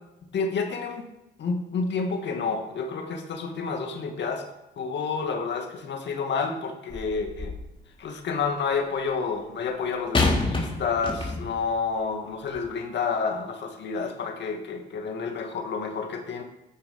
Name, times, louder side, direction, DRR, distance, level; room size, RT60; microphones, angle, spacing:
voice 1, 0.3-1.1 1.4-4.5 4.8-7.5 8.0-16.4, left 5 dB, 65° left, 3 dB, 2.1 m, -29 dB
sound 1, 6.9-7.7 10.1-11.7 12.5-12.6, left 3 dB, 25° left, 3.5 m, -27 dB
12.5 x 10.0 x 5.4 m, 0.95 s
cardioid pair, 85°, 20 cm